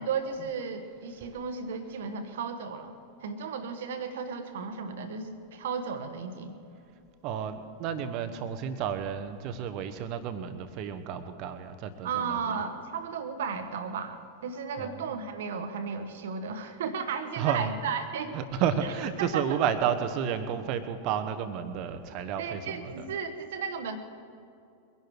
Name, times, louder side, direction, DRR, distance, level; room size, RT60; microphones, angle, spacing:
voice 1, 0.0-2.9 3.2-6.6 12.0-18.4 19.2-19.6 22.4-24.0, right 6 dB, 60° right, 9 dB, 1.3 m, -34 dB
voice 2, 7.2-12.6 14.8-15.0 17.4-17.7 18.3-23.1, right 8 dB, 40° right, 9 dB, 1.1 m, -31 dB
22.5 x 11.0 x 4.7 m, 2.5 s
figure-of-eight pair, 90°, 0 cm